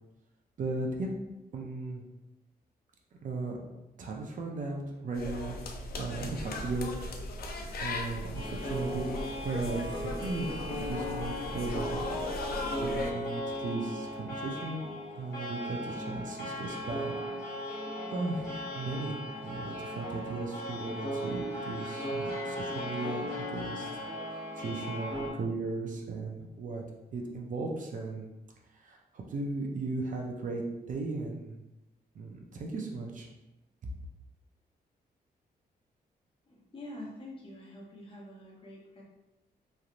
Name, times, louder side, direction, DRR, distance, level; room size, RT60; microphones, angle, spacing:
voice 1, 0.6-1.1 1.5-2.0 3.2-3.6 4.0-5.6 6.0-6.9 7.8-12.0 12.8-14.9 15.2-17.1 18.1-19.2 19.4-23.9 24.6-26.8 27.1-28.3 28.8-31.5 32.2-33.3, right 3 dB, 50° right, 0 dB, 0.5 m, -36 dB
sound 1, 5.1-13.1, left 2 dB, 65° left, 0.4 m, -38 dB
sound 2, 8.3-25.3, equal, 85° left, 1.2 m, -37 dB
voice 2, 36.5-39.0, left 1 dB, 30° left, -3 dB, 0.8 m, -46 dB
3.2 x 2.7 x 2.4 m, 1.0 s
cardioid pair, 115°, 17 cm